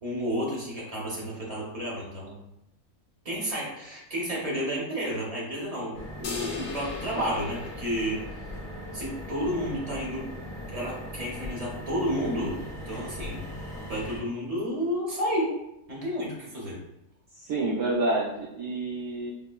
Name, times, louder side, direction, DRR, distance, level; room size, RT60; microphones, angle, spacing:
voice 1, 0.0-2.4 3.2-8.2 8.9-10.2 10.7-12.6 12.9-13.5 13.9-15.5 15.9-16.8, equal, 30° right, -4 dB, 0.7 m, -31 dB
sound 1, 5.9-14.2, left 1 dB, 40° left, 0.9 m, -39 dB
sound 2, 6.2-8.8, left 4 dB, 65° left, 1.0 m, -39 dB
voice 2, 17.3-19.3, right 2 dB, 70° right, -6 dB, 0.9 m, -28 dB
5.0 x 2.1 x 2.2 m, 0.86 s
omnidirectional pair, 1.6 m